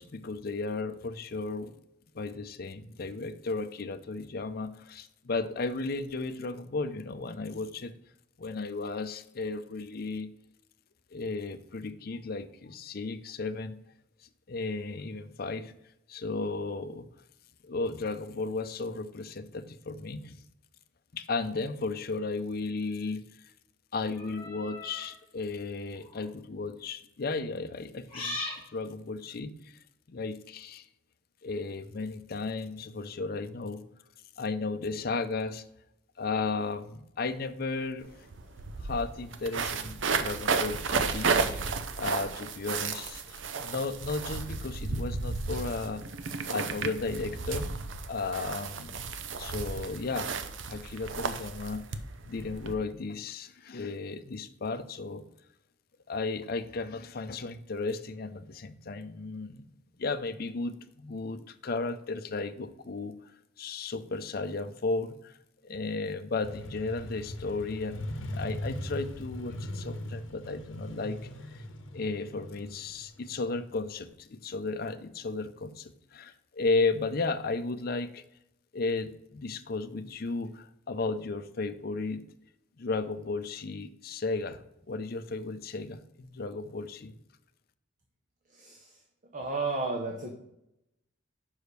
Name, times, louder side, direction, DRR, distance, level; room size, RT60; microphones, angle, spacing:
voice 1, 0.0-1.8 2.1-7.9 8.4-10.3 11.1-13.8 14.5-15.7 16.1-17.0 17.6-20.4 21.1-23.2 23.9-29.8 30.1-30.9 31.4-33.8 34.4-35.6 36.2-38.1 38.8-41.6 42.0-46.0 46.5-47.7 48.1-49.1 49.4-50.3 50.6-51.9 52.3-55.2 56.1-59.6 60.0-63.1 63.6-65.4 65.6-71.2 71.5-71.6 71.9-78.2 78.7-82.2 82.8-84.6 84.9-87.1, left 3 dB, 50° left, 10 dB, 0.5 m, -34 dB
sound 1, 24.1-25.1 26.0-26.2 28.1-28.6, left 2 dB, 30° left, 1.8 m, -38 dB
sound 2, 38.0-38.1 38.3-52.8, right 4 dB, 70° right, 0.6 m, -33 dB
Motorcycle, 66.4-74.1, equal, 75° left, 0.8 m, -40 dB
voice 2, 89.3-90.3, right 3 dB, 40° right, 2 dB, 0.8 m, -32 dB
5.6 x 5.0 x 6.6 m, 0.83 s
head